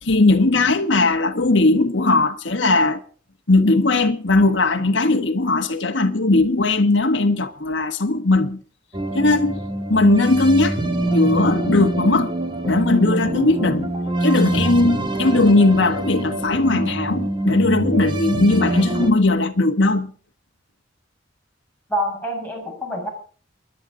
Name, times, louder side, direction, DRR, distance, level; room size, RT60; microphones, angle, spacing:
voice 1, 0.0-3.0 3.5-8.6 9.1-9.6 9.9-10.8 11.1-12.3 12.6-13.9 14.2-20.1, left 2 dB, 65° left, 1.5 m, -18 dB
sound 1, 8.9-19.1, right 1 dB, 25° right, 2.3 m, -24 dB
voice 2, 21.9-23.1, equal, 10° left, 7.6 m, -26 dB
28.5 x 11.0 x 3.9 m
head